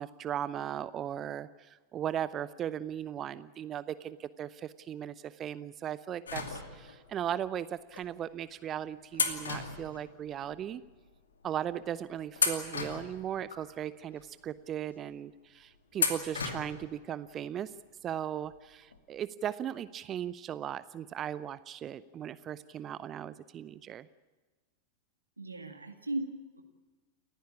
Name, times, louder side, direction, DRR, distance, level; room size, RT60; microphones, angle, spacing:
voice 1, 0.0-10.8 11.4-17.7 18.0-24.1, right 10 dB, 30° right, 17 dB, 0.7 m, -37 dB
sound 1, 6.3-7.1 7.9-8.1 9.1-10.6 10.9-11.0 11.7-11.9 12.3-13.7 14.2-14.3 16.0-16.9 17.2-17.3 18.5-18.6 18.9-19.0, left 5 dB, 70° left, 2.4 m, -34 dB
voice 2, 25.4-26.6, right 1 dB, 80° right, 5 dB, 2.1 m, -37 dB
29.0 x 15.0 x 8.6 m, 1.3 s
figure-of-eight pair, 90°, 0 cm